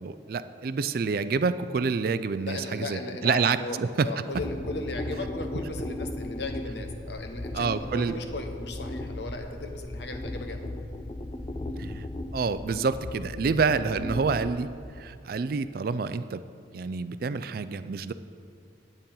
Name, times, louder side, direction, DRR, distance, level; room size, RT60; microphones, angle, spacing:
voice 1, 0.0-4.1 7.5-8.2 11.8-12.1 12.3-16.4 16.7-18.1, right 5 dB, 50° right, 13 dB, 0.3 m, -28 dB
voice 2, 2.5-10.6, left 2 dB, 60° left, 5 dB, 1.0 m, -37 dB
sound 1, 4.3-14.5, left 1 dB, 25° left, 0.4 m, -36 dB
9.1 x 9.0 x 5.5 m, 2.6 s
head